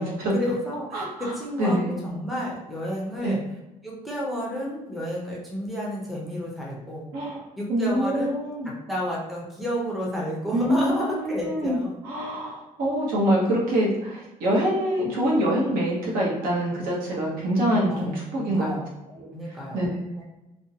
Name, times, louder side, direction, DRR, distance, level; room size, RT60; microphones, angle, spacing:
voice 1, 0.0-3.4 3.8-7.1 7.6-8.4 8.6-11.9 17.9-18.9 19.3-20.2, equal, ahead, -4 dB, 0.5 m, -31 dB
voice 2, 0.9-1.3 1.6-2.0 3.2-3.4 7.1-7.4 7.7-8.7 10.5-18.8 19.2-19.9, equal, 75° right, -4 dB, 0.9 m, -25 dB
2.6 x 2.1 x 2.7 m, 0.98 s
cardioid pair, 150°, 15 cm